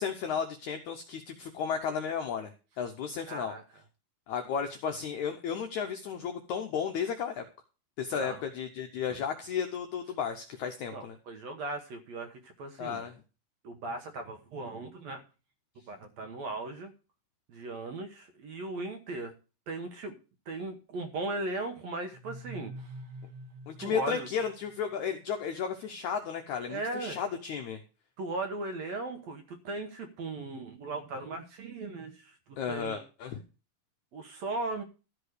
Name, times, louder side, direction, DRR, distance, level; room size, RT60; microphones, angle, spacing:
voice 1, 0.0-3.5 4.3-7.4 8.0-11.2 12.8-13.1 23.7-27.8 32.6-33.4, left 7 dB, 85° left, 5 dB, 1.6 m, -34 dB
voice 2, 3.3-3.6 8.1-8.4 9.1-9.2 10.9-13.0 13.6-15.2 15.9-16.9 17.5-19.3 19.7-20.1 20.5-23.0 23.8-24.3 26.7-27.2 28.2-33.0 34.1-34.8, right 2 dB, 70° right, 6 dB, 1.7 m, -37 dB
sound 1, 22.1-25.0, right 1 dB, 90° right, 3.3 m, -46 dB
13.0 x 4.9 x 6.5 m, 0.34 s
omnidirectional pair, 4.5 m